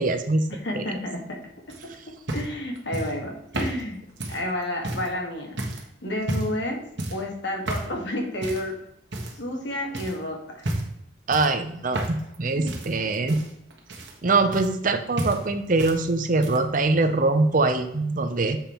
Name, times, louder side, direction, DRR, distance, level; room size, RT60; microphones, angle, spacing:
voice 1, 0.0-0.4 0.7-0.8 11.3-13.4 14.2-18.6, right 3 dB, 45° right, 8 dB, 0.6 m, -23 dB
voice 2, 0.6-1.4 1.7-1.9 2.3-5.6 6.0-6.8 7.1-8.8 9.3-10.7 12.5-12.7, left 1 dB, 60° left, 1 dB, 1.6 m, -31 dB
sound 1, 1.7-5.1 5.6-5.9 6.2-6.6 7.0-7.3 7.7-8.0 8.4-8.7 9.1-9.6 9.9-10.2 10.6-11.0 11.3-12.4 12.7-14.9 15.2-16.0 16.3-16.8 17.7-17.8, right 1 dB, 65° right, 1.4 m, -32 dB
7.2 x 5.4 x 4.4 m, 0.80 s
head